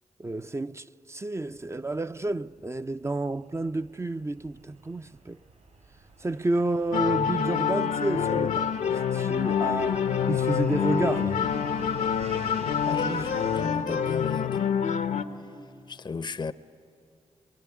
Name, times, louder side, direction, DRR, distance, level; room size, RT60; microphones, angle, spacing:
voice 1, 0.2-5.4 6.2-8.8 9.1-11.4 13.0-13.3, right 2 dB, 20° right, 0.5 m, -30 dB
Fixed-wing aircraft airplane, 1.4-13.6, right 3 dB, 65° right, 6.1 m, -48 dB
sound 1, 6.9-15.2, left 7 dB, 80° left, 0.9 m, -26 dB
voice 2, 12.9-14.6 16.0-16.5, left 4 dB, 35° left, 0.7 m, -34 dB
23.0 x 22.5 x 9.5 m
supercardioid pair, 45°, 13 cm